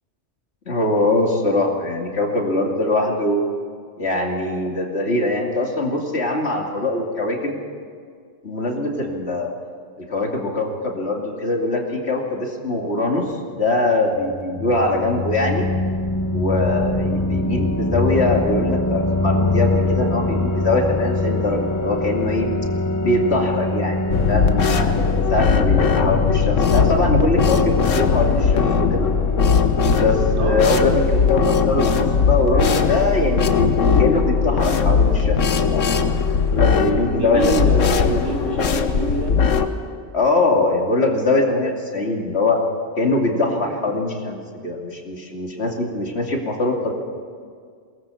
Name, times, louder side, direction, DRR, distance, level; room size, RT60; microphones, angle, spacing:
voice 1, 0.7-3.4 4.0-7.6 8.4-9.5 10.1-13.3 13.5-15.7 16.3-22.5 23.0-25.0 25.3-29.1 29.9-36.0 36.5-38.3 40.1-42.6 43.0-46.9, left 2 dB, 55° left, 0 dB, 2.9 m, -22 dB
sound 1, 14.2-30.9, left 2 dB, 15° left, 0.9 m, -24 dB
sound 2, 24.1-39.7, left 5 dB, 80° left, 1.5 m, -19 dB
voice 2, 30.3-31.1 37.0-39.5 43.6-43.8, right 2 dB, 60° right, 0 dB, 2.8 m, -27 dB
22.0 x 19.0 x 7.1 m, 2.1 s
omnidirectional pair, 1.3 m